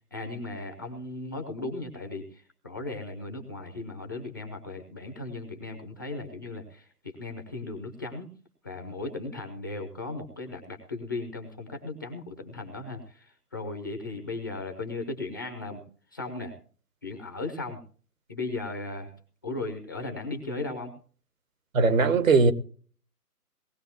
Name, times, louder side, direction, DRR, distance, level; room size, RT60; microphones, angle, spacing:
voice 1, 0.1-8.3 8.6-15.8 16.1-16.5 17.0-17.8 18.3-19.1 19.4-20.9, left 2 dB, 15° left, 0.6 m, -36 dB
voice 2, 21.7-22.5, right 4 dB, 60° right, 1.5 m, -19 dB
19.0 x 14.5 x 2.9 m
figure-of-eight pair, 145°, 47 cm